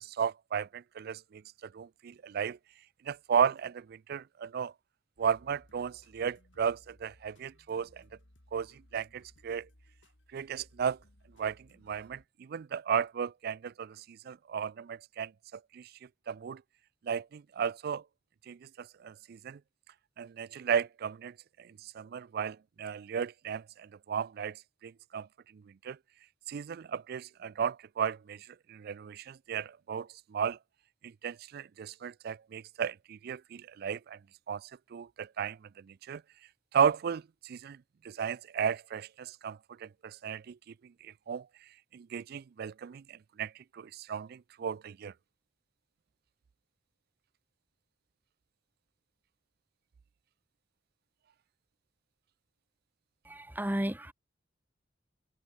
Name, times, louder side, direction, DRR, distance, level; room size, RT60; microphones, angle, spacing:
voice 1, 0.0-2.6 3.0-4.7 5.2-8.0 8.5-9.7 10.3-11.0 11.4-15.9 16.3-16.6 17.0-18.0 18.5-19.6 20.2-24.6 24.8-25.3 25.5-26.0 26.5-30.6 31.0-34.2 34.5-36.2 36.7-40.6 40.8-41.5 41.9-45.1, right 7 dB, 55° right, 0.4 m, -35 dB
sound 1, 5.2-12.3, left 1 dB, 90° left, 5.4 m, -62 dB
voice 2, 53.2-54.1, right 1 dB, 10° right, 1.4 m, -33 dB
head